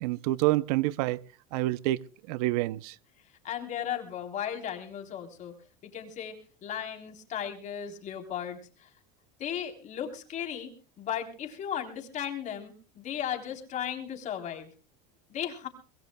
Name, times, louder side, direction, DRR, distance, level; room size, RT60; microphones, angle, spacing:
voice 1, 0.0-1.2 1.5-2.0 2.3-3.0, right 17 dB, 75° right, 0.7 m, -27 dB
voice 2, 3.4-5.5 5.8-6.4 6.6-8.9 9.4-10.7 11.0-14.7 15.3-15.7, left 9 dB, 35° left, 3.6 m, -36 dB
23.5 x 21.5 x 2.3 m
supercardioid pair, 135°, 20 cm